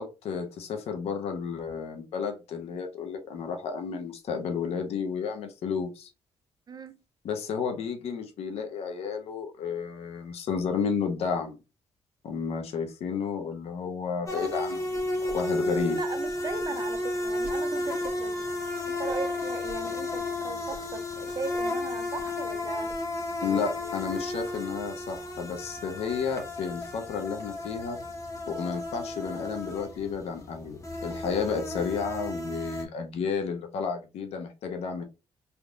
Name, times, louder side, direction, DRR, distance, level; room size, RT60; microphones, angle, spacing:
voice 1, 0.0-6.1 7.2-11.6 12.2-16.0 23.4-28.0 28.5-35.0, left 6 dB, 75° left, 0.8 m, -32 dB
voice 2, 6.7-7.0 15.9-18.5 18.9-22.9 23.4-24.0, right 4 dB, 40° right, 0.5 m, -38 dB
sound 1, 14.3-32.8, left 1 dB, 30° left, 1.2 m, -33 dB
sound 2, 14.9-15.4 15.6-17.6 18.0-18.4 19.1-19.8 20.1-20.2 20.7-20.8 21.1-21.7 22.0-22.6 22.9-23.2, right 2 dB, 15° right, 1.1 m, -48 dB
3.5 x 2.8 x 2.5 m
cardioid pair, 80°, 11 cm